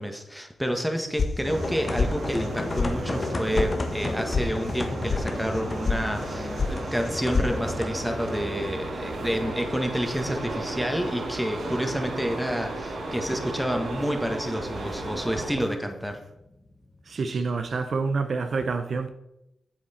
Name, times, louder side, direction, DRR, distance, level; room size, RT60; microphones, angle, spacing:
voice 1, 0.0-16.2, equal, ahead, 1.6 m, -29 dB
sound 1, 1.2-1.7 2.0-2.5 2.7-2.9 3.2-3.7 4.0-4.4 4.7-5.2 5.5-6.0 6.3-6.8 7.0-7.5, left 4 dB, 55° left, 1.0 m, -26 dB
sound 2, 1.4-17.6, left 2 dB, 40° left, 1.2 m, -35 dB
sound 3, 1.5-15.5, right 2 dB, 80° right, 2.4 m, -35 dB
voice 2, 17.1-19.1, right 4 dB, 65° right, 0.8 m, -27 dB
8.7 x 7.5 x 4.4 m
cardioid pair, 65°, 0 cm